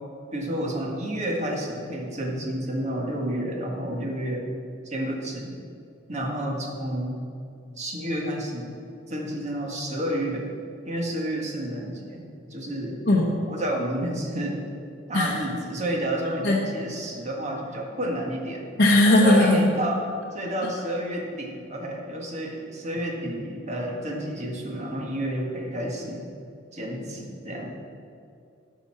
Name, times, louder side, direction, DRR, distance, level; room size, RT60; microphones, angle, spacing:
voice 1, 0.3-4.5 4.9-5.6 6.1-7.2 7.8-8.7 9.1-10.5 10.9-12.3 12.5-13.0 13.5-14.6 15.1-18.7 19.1-26.3 26.7-27.8, right 1 dB, 35° right, 0 dB, 1.7 m, -30 dB
voice 2, 13.1-13.4 15.1-15.4 16.4-16.6 18.8-19.7, left 1 dB, 55° left, -3 dB, 0.9 m, -18 dB
13.5 x 5.6 x 5.8 m, 2.5 s
head